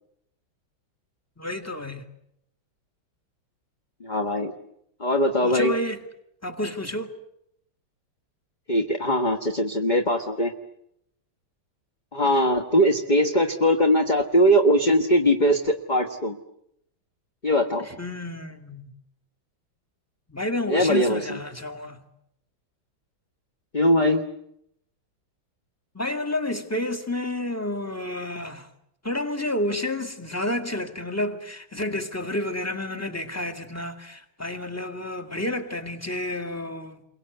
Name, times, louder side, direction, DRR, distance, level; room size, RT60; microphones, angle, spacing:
voice 1, 1.4-2.1 5.4-6.0 6.4-7.2 17.8-18.9 20.3-22.0 25.9-28.7 29.0-37.0, left 1 dB, 5° left, 2.0 m, -30 dB
voice 2, 4.0-4.5 5.0-5.7 8.7-10.5 12.1-16.4 17.4-17.9 20.7-21.4 23.7-24.2, equal, 25° left, 1.3 m, -21 dB
29.5 x 23.5 x 8.1 m
omnidirectional pair, 2.3 m